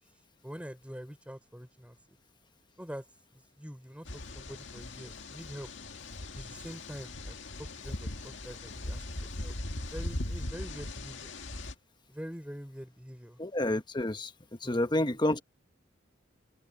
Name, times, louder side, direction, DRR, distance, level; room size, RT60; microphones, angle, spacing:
voice 1, 0.4-2.2 2.8-3.0 3.3-5.7 6.3-9.0 9.3-9.5 9.9-11.3 12.1-13.4 14.6-15.2, equal, 5° right, 4.5 m, -45 dB
sound 1, 4.0-11.7, left 1 dB, 70° left, 2.1 m, -39 dB
voice 2, 13.4-14.3 14.6-15.4, left 1 dB, 25° left, 1.2 m, -29 dB
open air
head